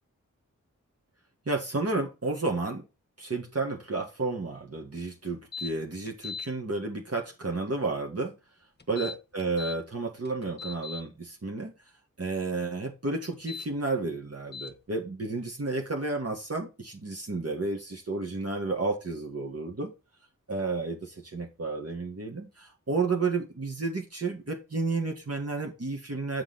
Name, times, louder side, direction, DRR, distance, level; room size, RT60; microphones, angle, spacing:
voice 1, 1.5-2.9 3.2-8.3 8.9-11.7 12.2-19.9 20.5-26.4, right 3 dB, 50° right, 2 dB, 1.9 m, -31 dB
sound 1, 5.5-5.7 6.1-6.5 8.8-9.8 10.2-11.0 13.3-13.7 14.5-14.7, left 5 dB, 35° left, 1.2 m, -38 dB
8.9 x 5.9 x 4.1 m, 0.28 s
wide cardioid pair, 75°, 31 cm